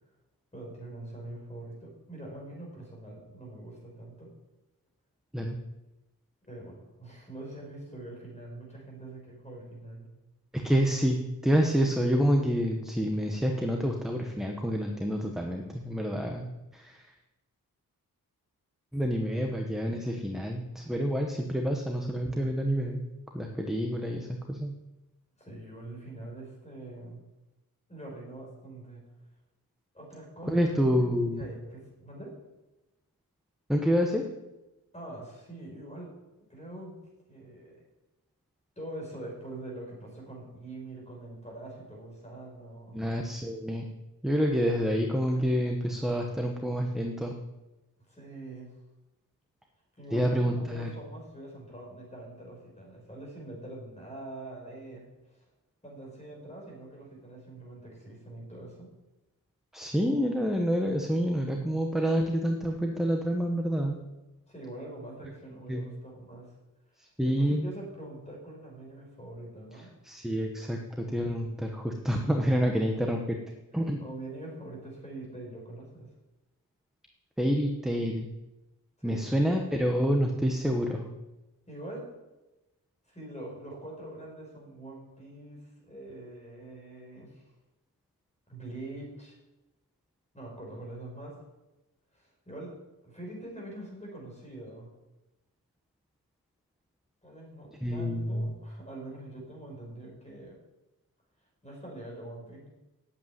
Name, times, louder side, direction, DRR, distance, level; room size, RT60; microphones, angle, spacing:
voice 1, 0.5-4.3 6.4-10.1 25.4-27.2 27.9-29.0 29.9-30.8 31.4-32.4 34.9-36.1 36.5-36.9 37.3-37.8 38.8-43.0 48.1-48.7 50.0-55.5 55.8-58.9 64.5-66.6 67.2-69.9 72.6-72.9 73.7-76.1 79.0-79.4 81.7-82.1 83.1-87.5 88.5-89.4 90.3-91.4 92.1-92.7 93.0-94.9 97.2-100.6 101.6-102.7, right 1 dB, 20° left, -2 dB, 5.2 m, -44 dB
voice 2, 10.6-11.2 11.4-16.5 16.7-17.0 18.9-23.0 23.3-24.7 30.5-31.4 33.7-34.2 42.9-43.9 44.2-47.3 50.1-50.9 59.7-64.0 65.7-65.8 67.2-67.7 70.0-73.2 73.7-74.0 77.4-78.3 79.0-81.1 97.8-98.5, equal, ahead, 2 dB, 1.0 m, -28 dB
8.8 x 8.3 x 9.4 m, 1.0 s
wide cardioid pair, 150°, 36 cm